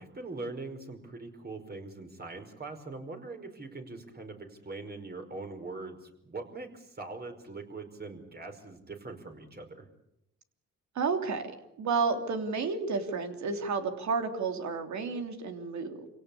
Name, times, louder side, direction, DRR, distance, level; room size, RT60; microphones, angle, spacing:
voice 1, 0.0-9.9, right 3 dB, 30° right, 5 dB, 5.1 m, -42 dB
voice 2, 10.9-11.5 11.8-16.1, right 4 dB, 65° right, 6 dB, 3.2 m, -31 dB
27.0 x 17.5 x 8.6 m, 0.81 s
cardioid pair, 90°, 30 cm